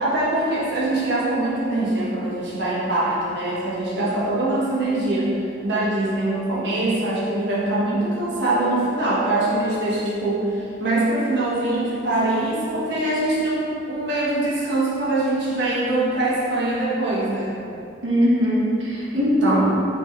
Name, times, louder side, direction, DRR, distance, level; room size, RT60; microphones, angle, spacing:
voice 1, 0.0-5.3 5.6-17.6, right 2 dB, 60° right, -8 dB, 1.4 m, -23 dB
voice 2, 18.0-19.9, equal, 80° right, -6 dB, 1.6 m, -20 dB
9.8 x 4.8 x 3.3 m, 2.7 s
head